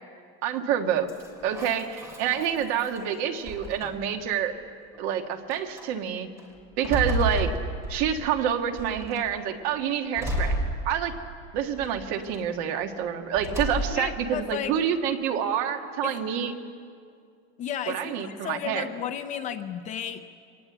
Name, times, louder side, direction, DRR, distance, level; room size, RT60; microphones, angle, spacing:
voice 1, 0.4-1.1 1.4-4.5 5.0-6.3 6.8-7.5 7.9-10.6 10.8-11.1 11.5-16.5 17.9-18.9, right 9 dB, 50° right, 5 dB, 1.6 m, -27 dB
sound 1, 1.1-3.0 3.4-4.2 4.9-5.0 5.5-5.8 6.4-8.3 8.8-9.3 10.2-11.3 11.8-12.4 13.3-14.2, right 1 dB, 10° right, 2.7 m, -31 dB
voice 2, 13.9-14.7 16.0-16.2 17.6-20.2, left 9 dB, 25° left, 8 dB, 0.5 m, -33 dB
24.0 x 19.0 x 7.9 m, 2.3 s
cardioid pair, 180°, 31 cm